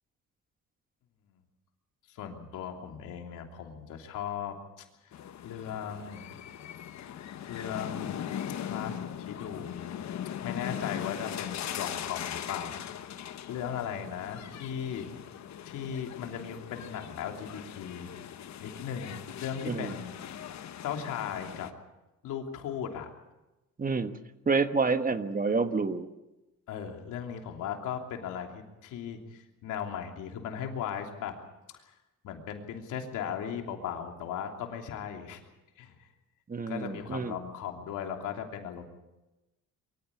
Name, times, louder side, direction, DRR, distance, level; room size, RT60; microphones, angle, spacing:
voice 1, 2.1-5.1 5.4-6.4 7.0-7.2 7.5-8.2 8.5-9.9 10.4-12.8 13.5-15.1 15.6-18.1 18.6-20.1 20.8-21.7 22.2-23.1 26.7-31.4 32.2-35.4 35.8-36.1 36.7-38.9, left 8 dB, 90° left, 3 dB, 3.1 m, -37 dB
sound 1, 5.1-21.7, left 10 dB, 65° left, 1.3 m, -40 dB
voice 2, 23.8-24.1 24.5-26.1 36.5-37.4, right 4 dB, 30° right, 9 dB, 1.4 m, -28 dB
23.5 x 15.0 x 8.5 m, 1.0 s
cardioid pair, 90°, 30 cm